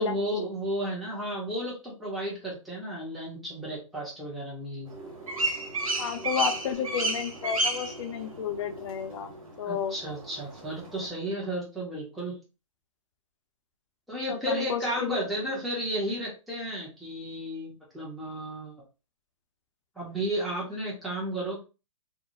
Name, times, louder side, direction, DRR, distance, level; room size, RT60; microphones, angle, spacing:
voice 1, 0.0-4.9 9.6-12.4 14.1-18.8 20.0-21.6, right 1 dB, ahead, -6 dB, 0.7 m, -33 dB
sound 1, 4.9-11.1, right 2 dB, 85° right, 0.9 m, -33 dB
voice 2, 6.0-9.3 9.6-9.9 14.3-15.2, left 7 dB, 60° left, 7 dB, 0.5 m, -31 dB
2.3 x 2.0 x 3.0 m, 0.31 s
hypercardioid pair, 135°, 17 cm